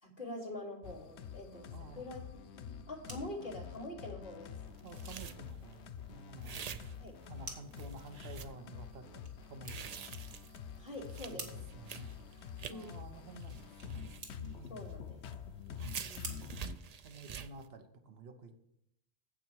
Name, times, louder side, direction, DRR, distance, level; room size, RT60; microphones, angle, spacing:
voice 1, 0.0-2.2 2.5-4.5 7.0-7.2 10.7-11.5 12.7-13.0 14.7-15.2 16.0-16.4, left 1 dB, 50° left, -3 dB, 2.7 m, -45 dB
sound 1, 0.8-16.8, left 7 dB, 85° left, 0.9 m, -47 dB
voice 2, 1.7-2.0 4.8-6.6 7.3-10.1 11.3-12.1 12.7-14.1 14.6-14.9 16.3-16.7 17.0-18.6, right 3 dB, 65° right, 6 dB, 1.2 m, -51 dB
sound 2, 2.8-17.6, right 3 dB, 85° right, 1.9 m, -54 dB
sound 3, 4.8-5.7 6.4-7.4 7.7-8.5 9.4-12.9 13.4-15.0 15.3-15.4 15.7-17.7, right 7 dB, 50° right, 0.5 m, -47 dB
9.1 x 7.8 x 4.6 m, 0.77 s
omnidirectional pair, 1.1 m